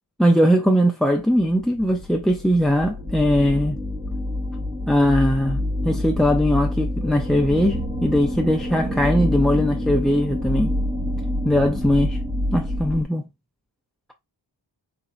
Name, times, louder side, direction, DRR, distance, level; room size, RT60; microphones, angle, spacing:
voice 1, 0.2-3.8 4.9-10.7 11.4-12.2 12.5-13.3, equal, ahead, 0.3 m, -20 dB
sound 1, 1.4-13.0, left 1 dB, 15° right, 0.7 m, -27 dB
4.2 x 3.9 x 2.4 m
wide cardioid pair, 110°, 46 cm